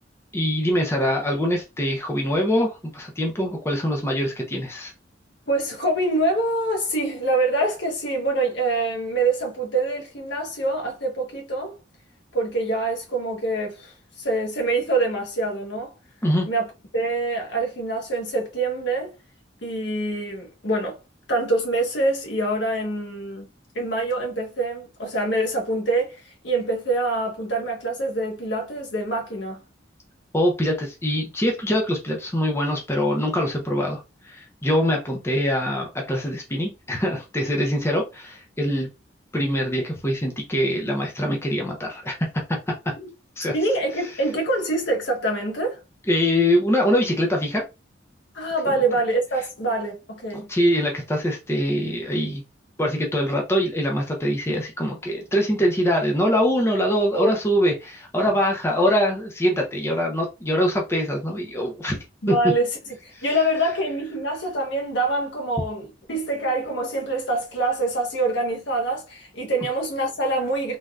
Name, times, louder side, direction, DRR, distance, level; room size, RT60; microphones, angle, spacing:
voice 1, 0.3-4.9 16.2-16.5 30.3-38.9 39.3-42.6 43.4-43.5 46.1-47.6 48.7-48.8 50.3-52.4 52.8-62.0 62.3-62.4 63.1-63.2, equal, 15° left, 0.6 m, -23 dB
voice 2, 5.5-11.7 12.3-15.9 16.5-16.7 16.9-19.1 19.6-21.0 21.3-23.5 23.7-29.6 43.5-45.8 48.3-50.5 57.1-57.3 62.2-62.7 63.0-70.8, right 2 dB, 75° left, 1.1 m, -25 dB
3.3 x 2.6 x 2.3 m
head